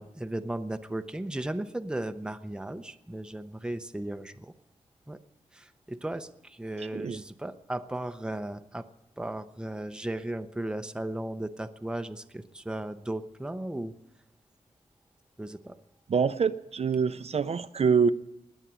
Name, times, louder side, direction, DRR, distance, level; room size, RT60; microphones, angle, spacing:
voice 1, 0.0-4.5 5.1-5.2 5.5-8.9 9.2-13.9 15.4-15.8, right 1 dB, 5° right, 9 dB, 0.6 m, -36 dB
voice 2, 16.1-18.1, right 6 dB, 50° right, 12 dB, 0.5 m, -25 dB
20.0 x 8.1 x 8.8 m, 0.86 s
wide cardioid pair, 160°, 13 cm